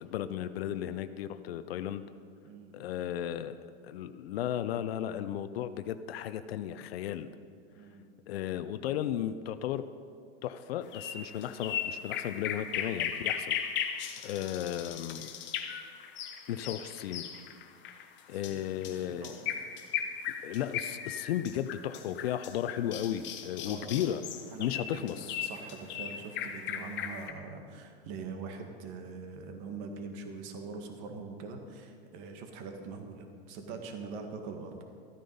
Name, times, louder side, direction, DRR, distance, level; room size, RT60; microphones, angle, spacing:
voice 1, 0.0-2.0 2.7-3.6 3.8-7.3 8.3-9.8 10.4-13.6 13.8-15.3 16.5-17.3 17.9-19.3 20.4-24.2 24.6-25.4, left 11 dB, 75° left, 11 dB, 0.6 m, -35 dB
voice 2, 2.4-2.7 7.8-8.1 18.5-19.5 23.6-24.2 24.5-34.8, right 4 dB, 50° right, 5 dB, 1.8 m, -43 dB
sound 1, 10.9-27.3, left 9 dB, 35° left, 1.2 m, -37 dB
14.0 x 9.3 x 5.4 m, 2.2 s
hypercardioid pair, 115°, 31 cm